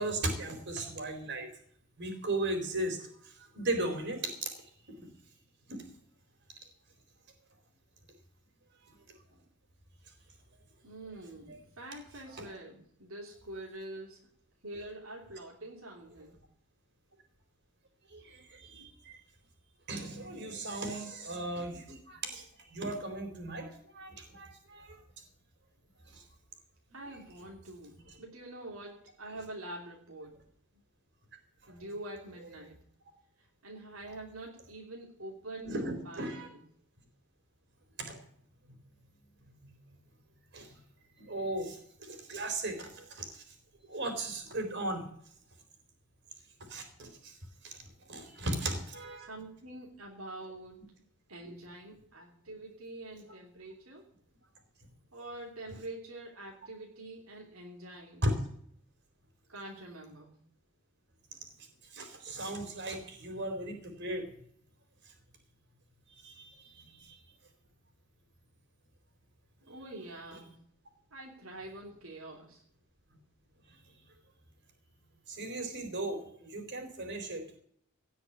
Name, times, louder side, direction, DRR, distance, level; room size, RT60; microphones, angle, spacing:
voice 1, 0.0-1.5 2.0-3.0 3.5-4.5 5.7-5.8 11.5-11.6 12.3-12.4 18.1-19.2 19.9-22.4 22.7-25.0 35.7-36.5 39.6-39.7 40.5-40.7 41.3-41.8 42.1-43.3 43.9-45.0 46.7-47.1 47.6-47.7 48.1-49.3 58.2-58.4 61.9-64.2 66.2-67.2 75.3-77.6, right 1 dB, 55° right, 5 dB, 4.0 m, -36 dB
voice 2, 10.8-14.2 14.6-16.4 26.9-30.4 31.7-32.8 33.6-36.6 49.3-50.9 51.3-54.1 55.1-58.3 59.5-60.3 69.7-70.6 71.1-72.6, right 1 dB, 80° right, -1 dB, 2.9 m, -45 dB
17.0 x 6.3 x 9.8 m, 0.64 s
head